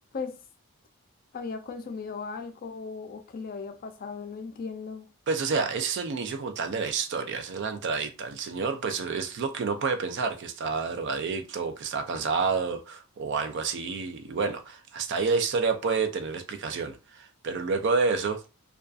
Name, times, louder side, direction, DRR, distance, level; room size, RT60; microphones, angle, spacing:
voice 1, 1.3-5.1, left 5 dB, 40° left, 0.3 m, -37 dB
voice 2, 5.3-18.4, right 4 dB, 50° right, 0.3 m, -29 dB
2.5 x 2.3 x 2.3 m
head